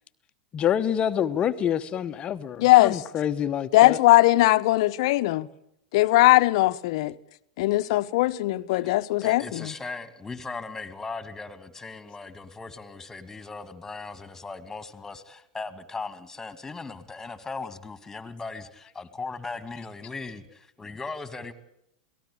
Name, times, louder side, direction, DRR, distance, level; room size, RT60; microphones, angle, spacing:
voice 1, 0.5-4.0, left 9 dB, 30° left, 1.0 m, -27 dB
voice 2, 2.6-3.0 3.7-5.5 5.9-7.1 7.6-9.7, left 18 dB, 55° left, 1.0 m, -20 dB
voice 3, 9.2-21.5, left 4 dB, 10° left, 2.3 m, -38 dB
29.5 x 18.5 x 8.7 m
figure-of-eight pair, 95°, 4 cm